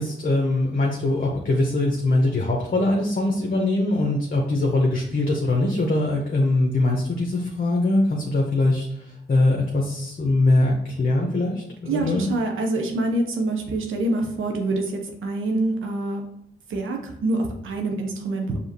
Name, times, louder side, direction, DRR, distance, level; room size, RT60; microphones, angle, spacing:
voice 1, 0.0-12.2, left 2 dB, 45° left, -1 dB, 0.8 m, -22 dB
voice 2, 11.9-16.2 16.7-18.6, right 2 dB, 90° right, 2 dB, 0.6 m, -26 dB
4.9 x 2.8 x 2.7 m, 0.74 s
cardioid pair, 40°, 20 cm